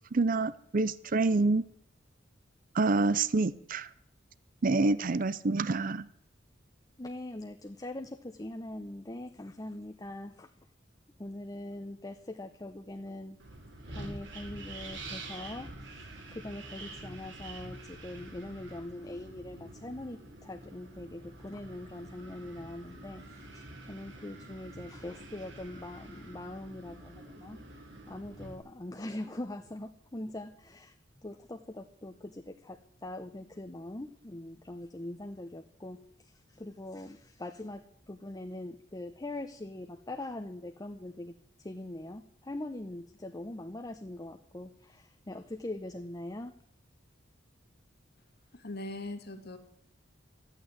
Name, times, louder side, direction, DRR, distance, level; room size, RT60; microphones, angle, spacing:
voice 1, 0.1-1.6 2.7-3.9 4.6-6.1, right 3 dB, 50° right, 17 dB, 0.6 m, -27 dB
voice 2, 7.0-10.5 11.2-13.4 13.9-27.6 28.1-37.8 38.1-46.5, left 1 dB, 20° left, 5 dB, 0.8 m, -42 dB
Wind, 13.4-28.6, right 2 dB, 65° right, 3.6 m, -47 dB
voice 3, 48.5-49.6, left 2 dB, 60° left, 6 dB, 2.2 m, -40 dB
13.5 x 9.0 x 9.9 m, 0.65 s
head